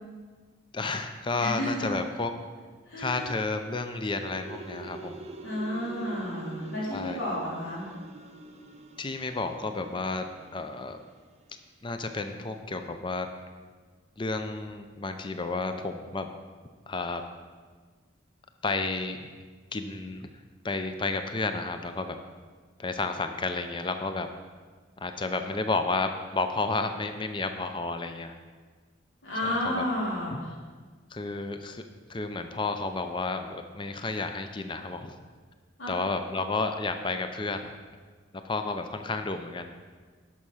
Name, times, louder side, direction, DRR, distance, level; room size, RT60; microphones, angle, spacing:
voice 1, 0.7-2.3 3.0-5.2 6.9-7.2 9.0-11.0 11.8-13.3 14.2-16.3 16.9-17.2 18.6-19.4 19.7-20.3 20.6-22.2 22.8-24.3 25.0-28.3 29.4-29.8 30.3-30.4 31.1-31.8 32.1-35.2 35.9-37.7 38.4-39.7, left 3 dB, 25° left, 7 dB, 0.5 m, -31 dB
voice 2, 1.4-1.9 2.9-3.3 5.4-7.9 29.2-30.5 35.8-35.9, left 1 dB, 75° left, -6 dB, 3.6 m, -31 dB
sound 1, 4.1-11.3, right 3 dB, 35° right, 0.6 m, -45 dB
11.0 x 6.2 x 5.6 m, 1.5 s
head